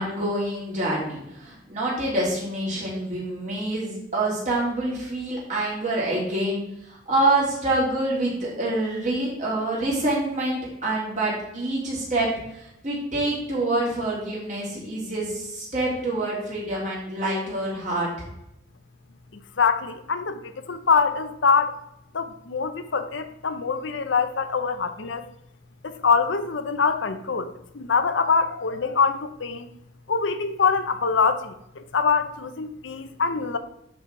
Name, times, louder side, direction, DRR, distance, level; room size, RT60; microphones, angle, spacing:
voice 1, 0.0-6.6 6.9-18.1, right 2 dB, 40° right, -5 dB, 3.2 m, -26 dB
voice 2, 19.6-21.8 22.1-25.2 25.8-29.7 30.1-33.6, left 5 dB, 70° left, 10 dB, 0.7 m, -24 dB
11.0 x 4.3 x 4.7 m, 0.81 s
head